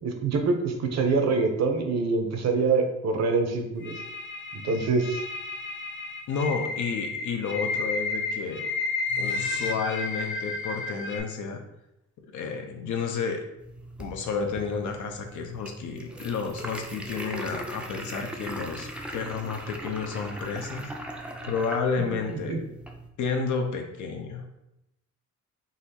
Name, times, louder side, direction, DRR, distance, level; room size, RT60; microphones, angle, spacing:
voice 1, 0.0-3.9 4.5-5.2 22.3-22.6, right 4 dB, 60° right, 4 dB, 0.8 m, -25 dB
sound 1, 3.8-11.2, left 3 dB, 40° left, 0.7 m, -32 dB
voice 2, 6.3-8.6 9.2-11.6 12.3-13.5 14.0-20.9 21.4-22.6 23.2-24.4, left 5 dB, 75° left, 3 dB, 0.8 m, -31 dB
sound 2, 13.6-23.1, right 1 dB, 5° right, 0.4 m, -39 dB
4.1 x 2.9 x 4.2 m, 0.85 s
cardioid pair, 140°, 30 cm